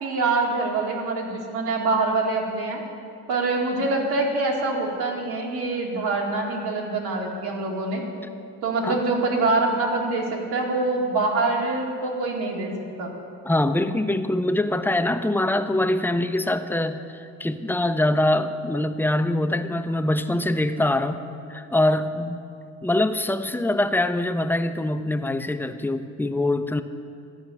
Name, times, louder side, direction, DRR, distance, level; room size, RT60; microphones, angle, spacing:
voice 1, 0.0-2.8 3.3-8.0 8.6-12.7 13.0-13.1, right 3 dB, 70° right, -1 dB, 2.2 m, -25 dB
voice 2, 13.5-21.2 21.5-22.4 22.8-26.8, left 1 dB, 5° left, 9 dB, 0.5 m, -24 dB
12.0 x 5.4 x 8.4 m, 2.6 s
supercardioid pair, 75°, 39 cm